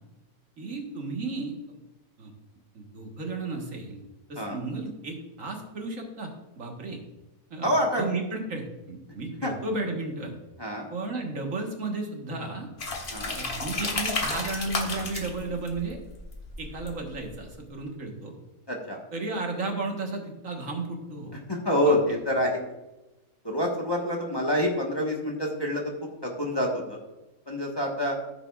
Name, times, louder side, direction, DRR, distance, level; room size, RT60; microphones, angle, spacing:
voice 1, 0.6-1.8 2.2-2.3 2.7-4.0 4.3-7.0 7.5-10.3 10.9-12.7 13.3-16.0 16.6-18.3 19.1-21.4 21.8-22.0, right 3 dB, 65° right, 1 dB, 1.8 m, -33 dB
voice 2, 7.6-8.0 9.4-9.5 10.6-10.9 13.1-13.4 18.7-19.0 21.5-22.6 23.4-25.8 26.2-27.0 27.5-28.2, equal, 20° left, -1 dB, 1.3 m, -27 dB
sound 1, 12.8-17.4, left 3 dB, 40° left, 1.4 m, -33 dB
14.0 x 7.4 x 2.4 m, 1.0 s
omnidirectional pair, 1.5 m